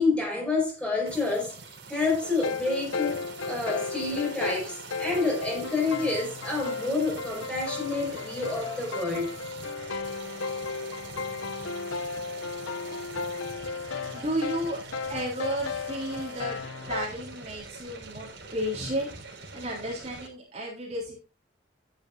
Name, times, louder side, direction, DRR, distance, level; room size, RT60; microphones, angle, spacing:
voice 1, 0.0-1.6 1.9-9.3, left 3 dB, 5° left, 5.1 m, -28 dB
sound 1, 1.0-20.3, right 4 dB, 75° right, 3.5 m, -44 dB
sound 2, 2.2-17.1, left 4 dB, 85° left, 0.7 m, -35 dB
voice 2, 14.1-14.8 15.1-16.6 16.9-19.1 19.5-21.1, equal, 35° right, 3.5 m, -32 dB
11.5 x 10.5 x 2.6 m
head